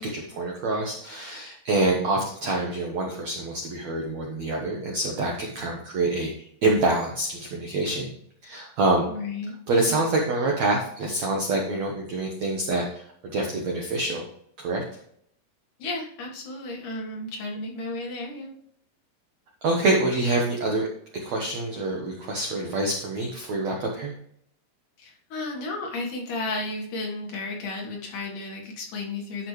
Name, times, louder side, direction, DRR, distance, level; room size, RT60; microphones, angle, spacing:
voice 1, 0.0-8.1 8.4-9.0 9.7-13.0 13.3-14.2 14.6-14.8 19.6-20.9 21.2-24.1, right 2 dB, 70° right, -1 dB, 1.6 m, -26 dB
voice 2, 9.1-9.5 15.8-18.5 25.0-29.5, left 2 dB, 55° left, -1 dB, 2.8 m, -33 dB
11.5 x 6.0 x 3.2 m, 0.67 s
omnidirectional pair, 4.9 m